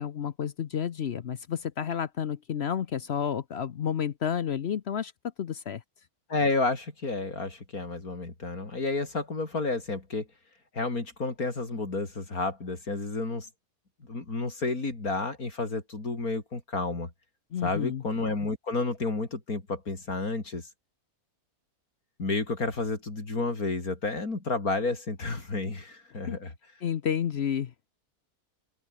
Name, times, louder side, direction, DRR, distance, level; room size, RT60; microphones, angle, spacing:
voice 1, 0.0-5.1 5.4-5.8 17.5-18.0 26.3-26.4 26.8-27.7, left 8 dB, 55° left, 0.9 m, -30 dB
voice 2, 6.3-10.3 10.7-13.5 14.1-17.1 17.6-20.7 22.2-26.5, left 3 dB, 70° left, 4.3 m, -31 dB
open air
omnidirectional pair, 1.6 m